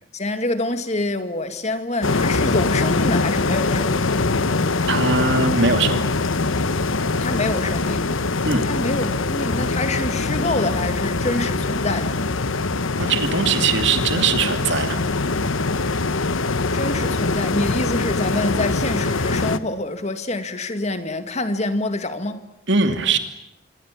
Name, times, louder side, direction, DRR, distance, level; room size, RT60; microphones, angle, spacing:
voice 1, 0.1-4.2 7.2-8.1 8.6-12.2 16.7-22.4, left 2 dB, 35° left, 2.0 m, -26 dB
sound 1, 2.0-19.6, left 3 dB, 75° left, 1.1 m, -23 dB
voice 2, 4.9-6.1 8.4-8.6 13.0-15.0 22.7-23.2, right 4 dB, 60° right, 2.8 m, -21 dB
26.0 x 25.5 x 8.6 m
head